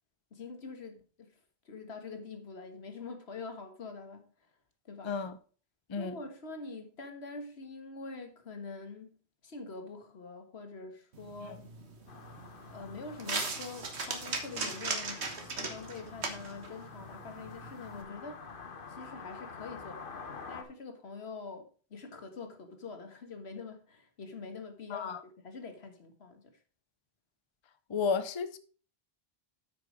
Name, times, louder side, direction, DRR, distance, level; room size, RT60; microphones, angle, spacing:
voice 1, 0.3-1.4 1.7-4.5 4.9-5.2 6.0-9.2 9.4-11.6 12.7-15.3 15.6-26.6, left 4 dB, 75° left, 1.8 m, -45 dB
voice 2, 5.0-5.4 5.9-6.2 24.9-25.2 27.9-28.6, left 5 dB, 35° left, 0.5 m, -32 dB
sound 1, 11.1-18.0, right 4 dB, 85° right, 1.7 m, -39 dB
sound 2, 12.1-20.6, left 5 dB, 55° left, 1.2 m, -48 dB
8.5 x 6.2 x 5.0 m
omnidirectional pair, 1.1 m